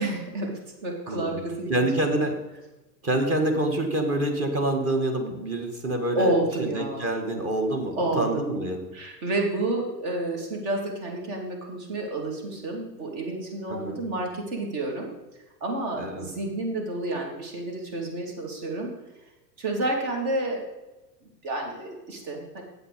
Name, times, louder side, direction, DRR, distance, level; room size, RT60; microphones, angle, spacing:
voice 1, 0.0-1.7 6.1-7.1 8.0-8.5 8.9-15.1 15.6-18.9 19.6-20.6 21.2-22.6, right 2 dB, 50° right, 1 dB, 3.0 m, -30 dB
voice 2, 1.1-1.4 1.7-2.4 3.0-8.9 13.7-14.0 16.0-16.3, right 1 dB, 30° right, 4 dB, 1.7 m, -27 dB
8.9 x 7.9 x 5.1 m, 1.1 s
hypercardioid pair, 105°, 50 cm